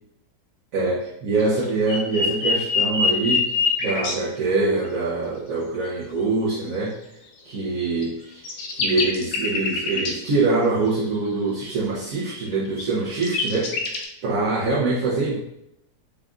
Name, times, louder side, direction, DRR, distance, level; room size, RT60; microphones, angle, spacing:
voice 1, 0.7-3.5 3.8-7.0 7.4-15.4, right 3 dB, 60° right, -6 dB, 0.9 m, -24 dB
sound 1, 1.4-4.2 8.0-8.1 8.4-10.1 12.7-12.8 13.2-14.1, left 4 dB, 65° left, 1.1 m, -23 dB
4.7 x 2.4 x 3.6 m, 0.81 s
omnidirectional pair, 2.0 m